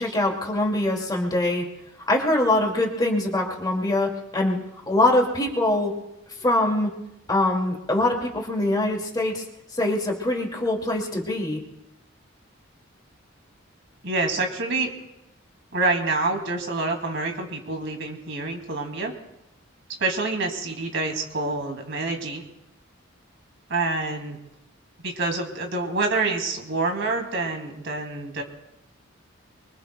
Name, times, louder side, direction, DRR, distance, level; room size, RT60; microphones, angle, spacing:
voice 1, 0.0-1.7 2.1-4.6 4.9-5.9 6.4-6.9 7.3-9.4 9.7-11.6, left 1 dB, 20° left, 0 dB, 2.3 m, -23 dB
voice 2, 14.0-14.9 15.7-19.1 20.0-22.4 23.7-24.4 25.0-28.4, right 3 dB, 65° right, 3 dB, 2.5 m, -27 dB
25.0 x 23.5 x 2.3 m, 0.88 s
head